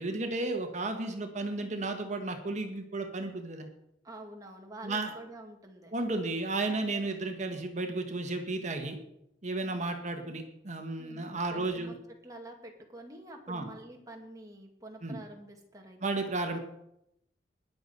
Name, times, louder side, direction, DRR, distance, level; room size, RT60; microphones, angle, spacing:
voice 1, 0.0-3.7 4.8-5.1 5.9-9.0 9.4-11.9 13.5-13.6 15.0-15.2 16.0-16.6, right 2 dB, 40° right, 5 dB, 1.6 m, -33 dB
voice 2, 4.0-5.9 11.0-11.9 12.2-16.0, right 1 dB, 20° right, 1 dB, 2.4 m, -47 dB
20.5 x 7.0 x 5.4 m, 0.80 s
head